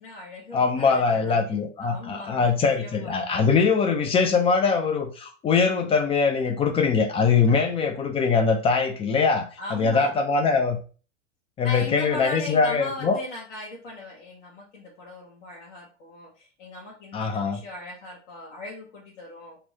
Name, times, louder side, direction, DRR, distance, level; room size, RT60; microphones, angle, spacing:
voice 1, 0.0-3.2 7.5-7.7 9.6-10.2 11.6-19.6, left 2 dB, 65° left, -3 dB, 1.2 m, -39 dB
voice 2, 0.5-10.8 11.6-13.2 17.1-17.6, left 5 dB, 15° left, 5 dB, 0.4 m, -22 dB
3.0 x 2.7 x 3.9 m, 0.37 s
figure-of-eight pair, 90°, 37 cm